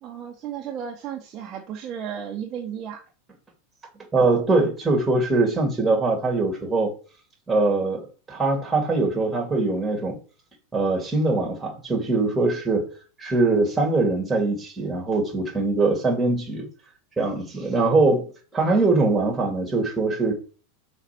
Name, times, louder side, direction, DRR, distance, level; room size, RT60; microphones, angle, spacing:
voice 1, 0.0-3.0, right 8 dB, 30° right, 1.2 m, -34 dB
voice 2, 4.1-6.9 7.5-10.2 10.7-12.9 13.2-16.6 17.2-20.3, right 3 dB, 10° right, 2.6 m, -22 dB
5.8 x 4.3 x 6.0 m
supercardioid pair, 155°, 0 cm